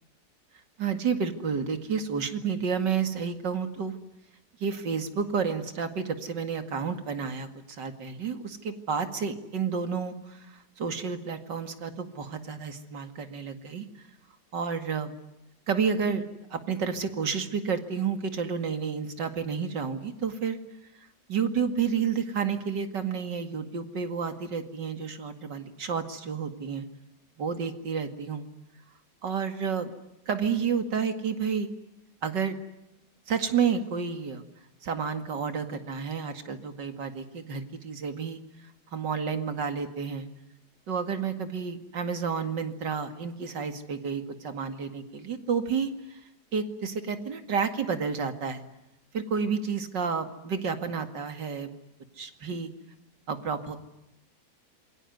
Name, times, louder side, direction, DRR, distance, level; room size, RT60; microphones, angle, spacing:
voice 1, 0.8-3.9 4.6-13.9 14.5-15.1 15.7-20.6 21.3-26.9 27.4-28.5 29.2-29.9 30.3-31.7 32.2-32.6 33.3-34.4 34.8-38.4 38.9-40.3 40.9-46.2 46.5-48.6 49.1-51.7 52.2-52.7 53.3-53.8, right 6 dB, 90° right, 8 dB, 2.8 m, -30 dB
27.0 x 23.5 x 9.3 m, 0.90 s
omnidirectional pair, 1.8 m